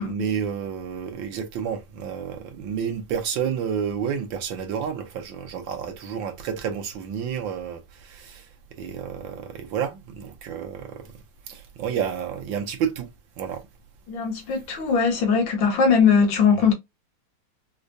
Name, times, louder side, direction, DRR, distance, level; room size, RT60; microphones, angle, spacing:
voice 1, 0.0-8.5 8.8-11.1 11.5-13.1 13.4-13.6, right 7 dB, 80° right, 1.6 m, -30 dB
voice 2, 14.1-16.7, left 6 dB, 80° left, 1.9 m, -20 dB
4.9 x 2.2 x 2.6 m
omnidirectional pair, 2.1 m